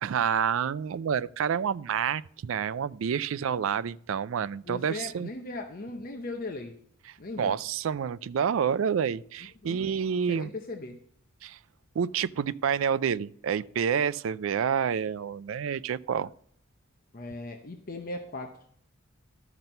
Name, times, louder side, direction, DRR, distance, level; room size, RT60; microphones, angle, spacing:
voice 1, 0.0-5.3 7.4-10.5 11.4-11.6 11.9-16.3, right 7 dB, 75° right, 0.4 m, -28 dB
voice 2, 4.6-6.8 7.2-7.6 9.6-11.0 17.1-18.5, left 2 dB, 45° left, 0.8 m, -38 dB
12.0 x 6.0 x 5.4 m
head